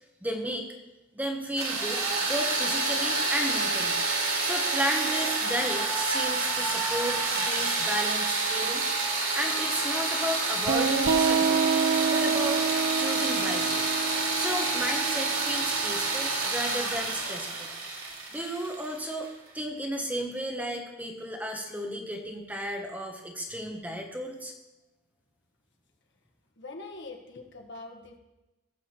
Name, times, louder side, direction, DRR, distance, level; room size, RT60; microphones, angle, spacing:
voice 1, 0.2-0.7 1.1-4.0 4.4-8.8 9.3-11.6 12.1-12.7 13.0-13.8 14.3-17.7 18.3-19.3 19.5-24.5, equal, 10° right, 2 dB, 1.2 m, -33 dB
sound 1, 1.6-19.3, right 3 dB, 85° right, 2.5 m, -28 dB
sound 2, 10.7-16.0, right 5 dB, 65° right, 0.9 m, -28 dB
voice 2, 26.6-28.2, left 3 dB, 60° left, 2 dB, 1.6 m, -43 dB
17.0 x 7.2 x 4.5 m, 1.0 s
head